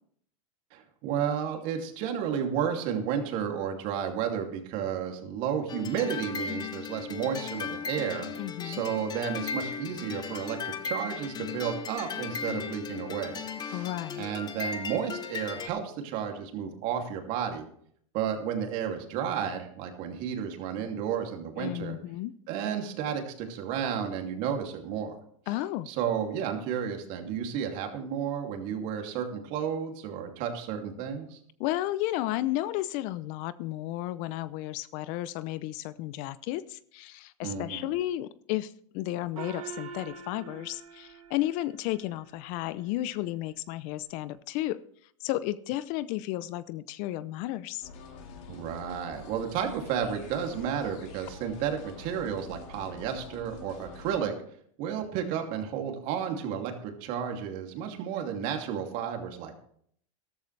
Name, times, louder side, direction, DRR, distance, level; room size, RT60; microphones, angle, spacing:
voice 1, 0.7-8.3 8.6-13.9 14.2-17.7 18.1-21.9 22.5-25.1 25.9-31.4 37.4-37.9 48.5-54.3 54.8-59.6, right 8 dB, 50° right, 3 dB, 2.7 m, -32 dB
sound 1, 5.7-15.7, left 6 dB, 25° left, 1.0 m, -37 dB
voice 2, 8.4-8.8 13.7-14.2 21.6-22.3 25.5-25.9 31.6-44.8 45.2-47.9, left 15 dB, 50° left, 17 dB, 0.6 m, -33 dB
Gong, 39.4-42.3, right 7 dB, 90° right, 1.4 m, -44 dB
sound 2, 47.8-54.2, left 5 dB, 65° left, 3.2 m, -46 dB
14.0 x 13.0 x 3.3 m, 0.63 s
supercardioid pair, 130°, 17 cm